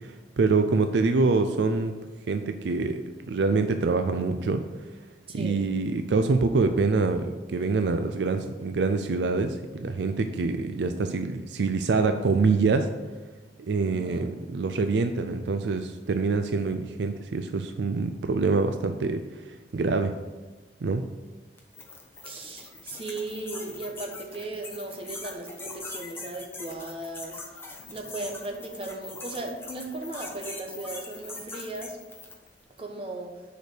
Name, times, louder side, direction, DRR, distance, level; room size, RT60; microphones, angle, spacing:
voice 1, 0.0-1.9 2.3-3.0 3.3-4.6 5.3-12.9 13.7-20.2 20.8-21.0, right 4 dB, 75° right, 8 dB, 0.4 m, -25 dB
voice 2, 5.3-5.7 13.8-14.3 22.2-27.4 27.9-32.0 32.8-33.3, right 2 dB, 30° right, 2 dB, 1.1 m, -37 dB
sound 1, 21.6-32.5, left 3 dB, 15° left, 1.1 m, -42 dB
6.5 x 5.1 x 6.3 m, 1.3 s
head